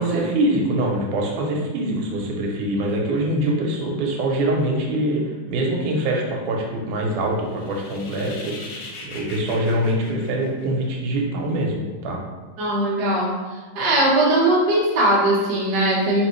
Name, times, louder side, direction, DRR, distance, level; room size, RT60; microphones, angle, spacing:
voice 1, 0.0-12.2, right 1 dB, 80° right, -1 dB, 2.2 m, -24 dB
sound 1, 7.4-11.0, left 3 dB, 75° left, 1.9 m, -40 dB
voice 2, 12.6-13.3 13.7-16.2, right 1 dB, 55° right, -6 dB, 1.1 m, -19 dB
4.3 x 3.4 x 3.0 m, 1.4 s
omnidirectional pair, 3.6 m